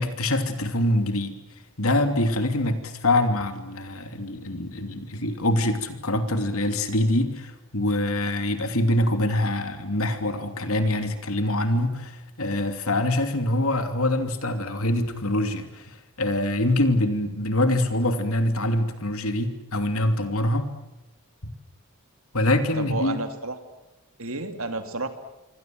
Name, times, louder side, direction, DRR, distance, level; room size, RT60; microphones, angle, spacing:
voice 1, 0.0-1.4 1.8-20.7 22.3-23.2, left 1 dB, 75° left, 7 dB, 3.0 m, -24 dB
voice 2, 22.8-23.6 24.2-25.1, right 2 dB, 70° right, 7 dB, 2.7 m, -31 dB
27.5 x 24.0 x 7.8 m, 0.96 s
head